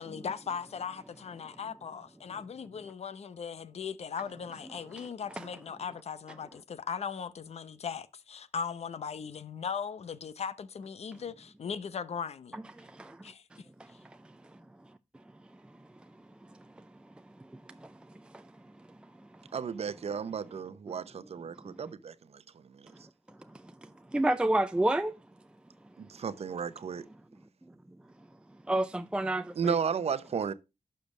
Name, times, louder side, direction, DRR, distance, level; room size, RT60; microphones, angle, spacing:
voice 1, 0.0-12.6 13.2-13.4, left 6 dB, 65° left, 0.8 m, -38 dB
voice 2, 12.8-13.2 13.5-13.9 16.8-16.9 17.5-17.9 18.2-18.5 21.6-21.7 23.5-25.1 28.7-29.8, right 1 dB, 10° right, 0.4 m, -31 dB
voice 3, 19.5-22.4 22.7-22.9 26.0-27.0 29.6-30.5, right 6 dB, 60° right, 0.8 m, -33 dB
11.5 x 6.8 x 3.2 m
wide cardioid pair, 145°, 12 cm